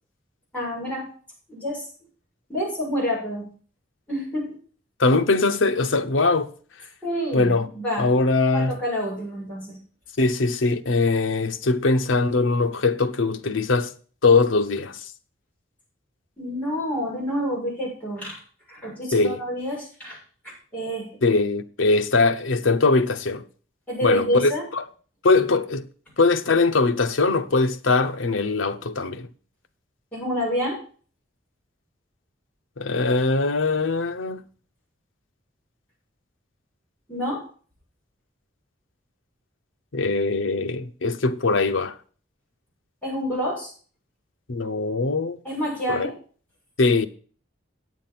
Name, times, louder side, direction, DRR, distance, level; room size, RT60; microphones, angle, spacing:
voice 1, 0.5-1.0 1.5-1.9 2.5-3.4 4.1-4.6 7.0-8.1 8.5-9.8 16.4-18.4 18.7-20.2 20.7-21.1 23.9-24.6 30.1-30.8 37.1-37.4 43.0-43.7 45.4-46.1, equal, 5° left, 6.7 m, -28 dB
voice 2, 5.0-6.5 7.3-7.7 8.0-8.7 10.2-13.9 14.2-15.1 19.1-19.4 21.2-23.4 24.0-24.8 25.2-25.9 26.2-29.3 32.8-34.5 39.9-42.0 44.5-45.4 45.9-46.1 46.8-47.1, left 3 dB, 80° left, 0.8 m, -21 dB
9.2 x 7.3 x 5.9 m
head